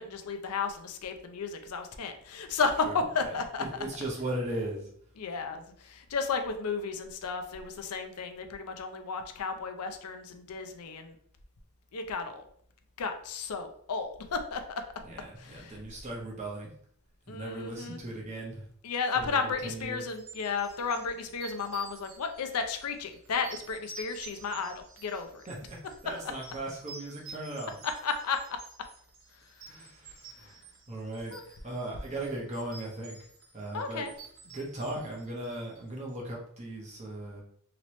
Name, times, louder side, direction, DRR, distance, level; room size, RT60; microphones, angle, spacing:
voice 1, 0.0-3.6 5.2-11.1 11.9-12.4 13.0-14.8 15.4-15.8 17.3-18.0 18.8-25.4 28.0-28.6 29.5-29.6 30.4-30.6 31.3-31.4 33.7-34.1, left 5 dB, 85° left, 6 dB, 0.5 m, -33 dB
voice 2, 2.8-4.9 15.0-16.7 17.3-18.6 19.0-20.1 23.9-24.2 25.5-27.8 29.6-30.5 30.9-31.3 31.6-33.2 33.5-34.1 34.4-37.4, right 1 dB, 30° right, -2 dB, 0.9 m, -38 dB
sound 1, 20.1-35.9, right 3 dB, 60° right, 0.7 m, -50 dB
3.0 x 2.9 x 3.0 m, 0.62 s
head